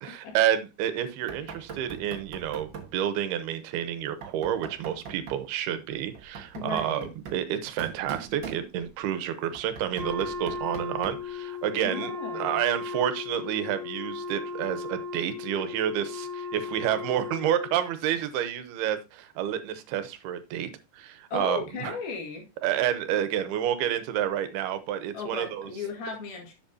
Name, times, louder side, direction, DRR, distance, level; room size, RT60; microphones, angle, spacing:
voice 1, 0.0-21.9 22.6-25.7, right 10 dB, 80° right, 2.8 m, -29 dB
Knock, 1.3-3.0 4.2-5.5 6.1-9.0 9.5-11.3, right 6 dB, 50° right, 1.4 m, -42 dB
voice 2, 6.6-7.1 11.8-12.6 21.3-22.5 25.1-26.5, left 4 dB, 70° left, 3.9 m, -35 dB
Wind instrument woodwind instrument, 9.9-17.9, left 4 dB, 15° right, 2.8 m, -36 dB
11.0 x 7.6 x 2.7 m
omnidirectional pair, 4.6 m